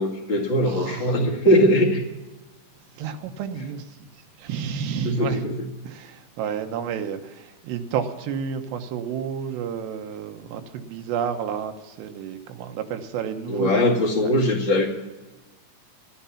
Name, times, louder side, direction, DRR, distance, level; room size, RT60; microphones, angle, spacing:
voice 1, 0.0-2.0 5.0-5.6 13.5-14.9, left 1 dB, 40° left, 2.0 m, -20 dB
voice 2, 0.6-1.2 3.0-5.4 5.8-14.0 14.2-14.3, right 7 dB, 90° right, 3.2 m, -31 dB
12.5 x 12.5 x 7.2 m
omnidirectional pair, 4.9 m